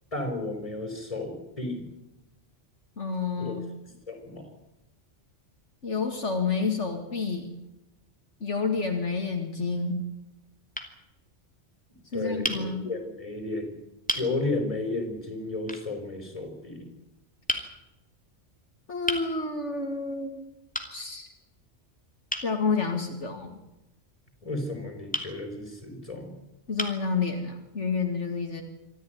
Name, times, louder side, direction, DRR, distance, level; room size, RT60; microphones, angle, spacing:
voice 1, 0.1-1.9 3.3-3.6 4.1-4.5 12.1-13.8 14.1-16.9 24.4-26.4, left 2 dB, 30° left, 5 dB, 5.9 m, -33 dB
voice 2, 3.0-3.6 5.8-7.5 8.4-9.9 12.1-12.9 18.9-20.5 20.9-21.3 22.4-23.6 26.7-28.6, left 4 dB, 75° left, 3 dB, 2.6 m, -29 dB
sound 1, 9.3-9.6 10.3-10.5 10.7-10.9 12.4-12.6 13.5-13.6 14.1-14.3 15.7-15.9 17.5-17.7 19.1-19.3 20.7-20.9 22.3-22.5 25.1-25.3 26.2-26.3 26.8-27.1, equal, 5° left, 2.7 m, -31 dB
26.0 x 14.0 x 9.5 m, 0.95 s
omnidirectional pair, 1.2 m